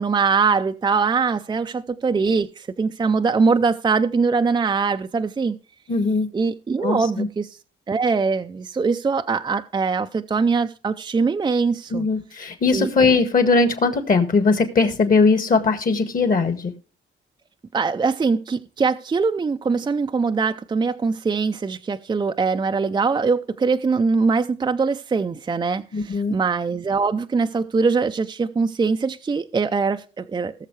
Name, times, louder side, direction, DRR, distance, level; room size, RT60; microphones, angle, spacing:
voice 1, 0.0-5.6 6.3-7.6 7.9-12.1 12.7-12.9 17.7-30.5, right 4 dB, 20° right, 0.5 m, -22 dB
voice 2, 5.9-6.3 6.8-7.3 11.9-16.7 25.9-26.4, left 4 dB, 45° left, 1.8 m, -19 dB
18.5 x 6.6 x 3.2 m
cardioid pair, 90°, 20 cm